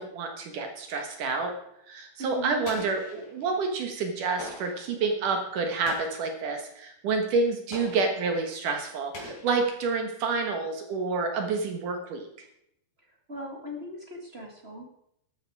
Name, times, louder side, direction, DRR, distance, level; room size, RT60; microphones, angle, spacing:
voice 1, 0.0-1.5 1.9-12.3, right 4 dB, 65° right, 5 dB, 2.9 m, -29 dB
voice 2, 2.2-2.6 13.0-14.9, equal, 30° right, 1 dB, 1.1 m, -39 dB
Explosion, 2.6-3.6 4.4-4.9 5.9-6.4 7.7-8.3 9.1-10.0, left 1 dB, 55° left, 5.5 m, -43 dB
13.5 x 12.5 x 4.8 m, 0.77 s
omnidirectional pair, 4.2 m